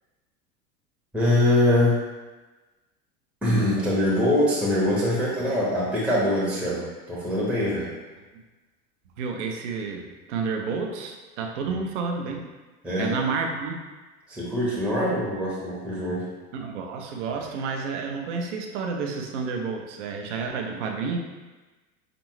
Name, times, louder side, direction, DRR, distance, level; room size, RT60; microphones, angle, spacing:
voice 1, 1.1-2.0 3.4-7.9 12.8-13.1 14.3-16.2, left 1 dB, 5° right, -7 dB, 0.8 m, -23 dB
voice 2, 9.2-12.5 12.9-13.8 16.5-21.2, right 5 dB, 50° right, 3 dB, 0.7 m, -30 dB
5.3 x 2.5 x 3.1 m, 1.2 s
figure-of-eight pair, 85°, 46 cm